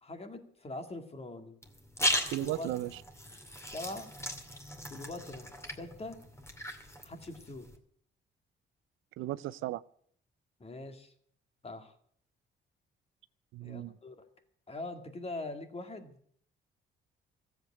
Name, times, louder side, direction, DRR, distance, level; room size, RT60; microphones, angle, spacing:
voice 1, 0.0-1.6 2.4-2.9 3.7-4.1 4.9-5.5 5.8-6.2 7.0-7.7 10.6-11.1 11.6-11.9 13.6-14.3 14.7-16.1, left 2 dB, 30° left, 7 dB, 2.2 m, -42 dB
sound 1, 1.6-7.7, left 1 dB, 15° left, 2.3 m, -37 dB
voice 2, 2.3-3.0 9.2-9.8 13.5-13.9, right 16 dB, 85° right, 17 dB, 0.5 m, -35 dB
14.5 x 8.1 x 10.0 m, 0.63 s
cardioid pair, 90°, 20 cm